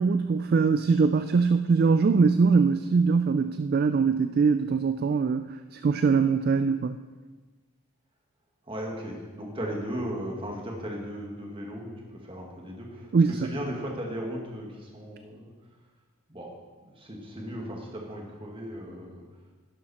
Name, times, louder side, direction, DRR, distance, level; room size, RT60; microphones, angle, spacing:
voice 1, 0.0-7.0 13.1-13.4, right 5 dB, 45° right, 10 dB, 0.3 m, -22 dB
voice 2, 8.7-15.5 16.3-16.6 16.8-19.2, equal, 25° right, 0 dB, 1.8 m, -36 dB
11.0 x 11.0 x 4.2 m, 1.3 s
head